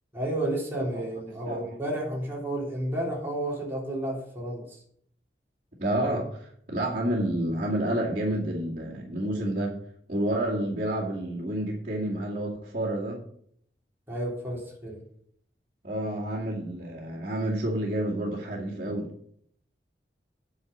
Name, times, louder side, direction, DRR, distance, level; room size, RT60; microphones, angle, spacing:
voice 1, 0.1-4.8 14.1-15.0, right 1 dB, 15° right, -4 dB, 3.3 m, -31 dB
voice 2, 1.4-1.8 5.8-9.8 10.1-13.2 15.8-19.1, right 1 dB, 45° right, -7 dB, 2.3 m, -29 dB
9.6 x 5.9 x 7.3 m, 0.66 s
head